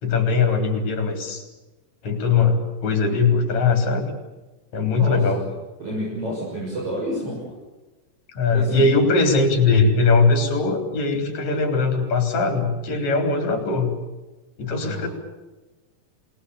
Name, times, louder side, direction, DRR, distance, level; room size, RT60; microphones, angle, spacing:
voice 1, 0.0-1.4 2.0-4.1 4.7-5.4 8.3-13.9 14.6-15.1, left 4 dB, 40° left, 5 dB, 4.7 m, -20 dB
voice 2, 4.9-5.5 5.8-7.5 8.5-8.8 14.8-15.1, equal, 35° right, -4 dB, 7.6 m, -29 dB
28.0 x 20.0 x 7.1 m, 1.1 s
omnidirectional pair, 4.9 m